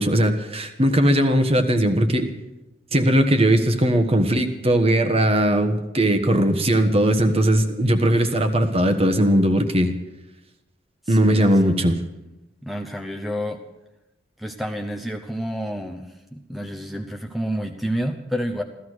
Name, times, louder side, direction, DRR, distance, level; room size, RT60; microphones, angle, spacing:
voice 1, 0.0-2.3 2.9-9.9 11.1-12.0, right 1 dB, 35° right, 7 dB, 1.3 m, -19 dB
voice 2, 11.1-11.7 12.6-13.6 14.4-16.1 16.3-18.6, equal, ahead, 3 dB, 0.8 m, -29 dB
15.5 x 14.0 x 6.4 m, 0.96 s
head